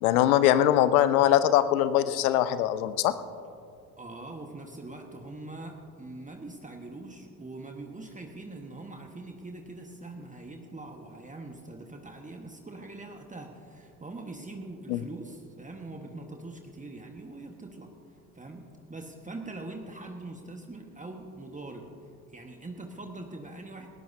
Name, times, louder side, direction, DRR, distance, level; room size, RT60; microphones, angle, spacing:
voice 1, 0.0-3.1 14.9-15.0, left 12 dB, 70° left, 14 dB, 0.8 m, -22 dB
voice 2, 4.0-17.9 18.3-21.9 22.3-23.9, right 2 dB, 15° right, 3 dB, 1.5 m, -43 dB
19.5 x 19.0 x 2.8 m, 2.4 s
figure-of-eight pair, 55°, 44 cm